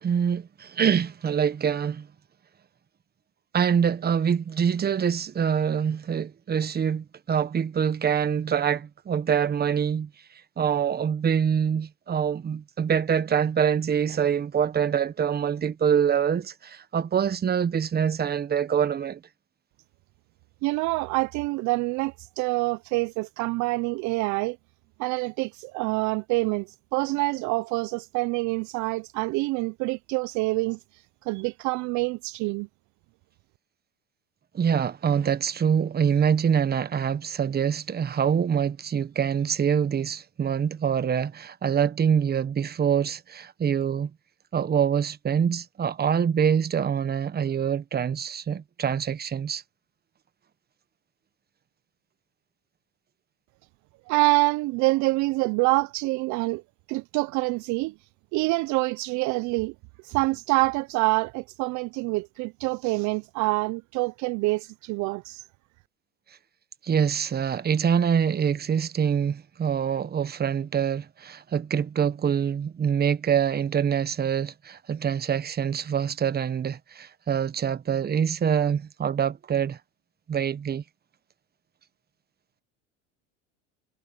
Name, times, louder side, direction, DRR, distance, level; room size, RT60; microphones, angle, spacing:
voice 1, 0.0-2.1 3.5-10.1 10.6-19.2 34.5-44.1 44.5-49.6 66.8-79.8 80.3-80.8, right 7 dB, 25° right, 1.3 m, -25 dB
voice 2, 20.6-24.6 25.0-32.7 54.1-56.6 56.9-57.9 58.3-59.7 60.0-65.5, right 23 dB, 55° right, 0.6 m, -26 dB
supercardioid pair, 100°, 36 cm